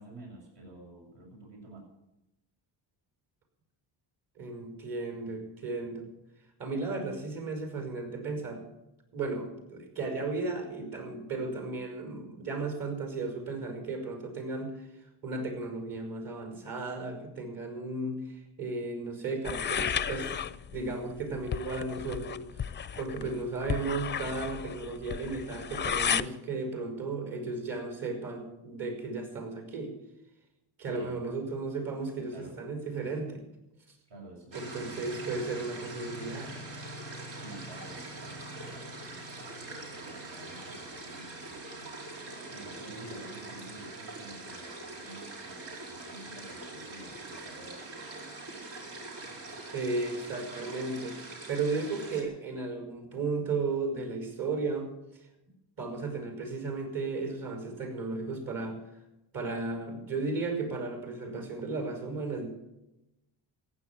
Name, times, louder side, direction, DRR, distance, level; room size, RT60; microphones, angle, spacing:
voice 1, 0.0-1.8 30.9-31.3 32.3-32.6 34.1-35.6 37.3-47.8, right 1 dB, 65° right, -1 dB, 7.5 m, -50 dB
voice 2, 4.4-6.1 6.6-8.6 9.1-14.8 15.2-20.3 20.7-22.5 23.0-29.9 30.8-33.4 34.5-36.5 49.5-54.9 55.8-58.8 59.3-62.5, right 3 dB, 50° right, 5 dB, 5.6 m, -35 dB
sound 1, 19.4-26.3, left 8 dB, 25° left, 0.4 m, -34 dB
sound 2, 34.5-52.2, right 2 dB, 85° right, 4.7 m, -43 dB
15.0 x 10.0 x 8.5 m, 0.92 s
cardioid pair, 125°, 44 cm